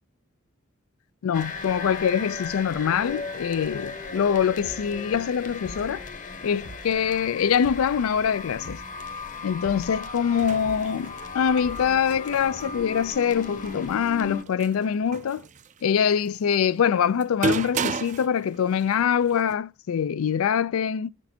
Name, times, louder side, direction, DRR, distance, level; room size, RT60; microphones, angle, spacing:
voice 1, 1.2-6.0 6.4-8.8 9.4-15.4 15.8-21.1, left 7 dB, 85° left, 0.4 m, -24 dB
sound 1, 1.3-14.4, left 4 dB, 40° left, 0.9 m, -37 dB
sound 2, 4.6-4.9 5.6-6.0 6.6-6.9 7.6-8.0 8.6-8.9 9.6-10.0 10.6-10.9 11.6-12.0, right 2 dB, 65° right, 1.2 m, -43 dB
sound 3, 10.2-19.5, right 4 dB, 35° right, 0.4 m, -35 dB
15.5 x 6.2 x 2.8 m
head